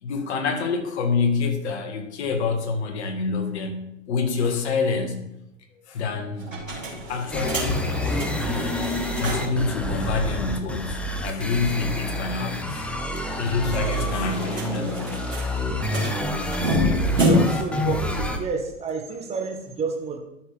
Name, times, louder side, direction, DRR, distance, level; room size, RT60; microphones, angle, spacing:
voice 1, 0.0-5.2 5.9-6.5 7.1-7.8 8.4-8.8 9.2-12.9 13.2-15.0 15.9-16.2, left 4 dB, 60° left, 5 dB, 1.8 m, -27 dB
sound 1, 6.4-9.7 10.0-10.1 10.3-10.4 13.2-17.7, equal, 85° right, 3.0 m, -28 dB
sound 2, 7.3-18.4, equal, 5° left, 0.6 m, -28 dB
voice 2, 17.2-20.2, right 4 dB, 15° right, 3 dB, 1.3 m, -30 dB
12.0 x 6.0 x 3.4 m, 0.88 s
figure-of-eight pair, 105°, 38 cm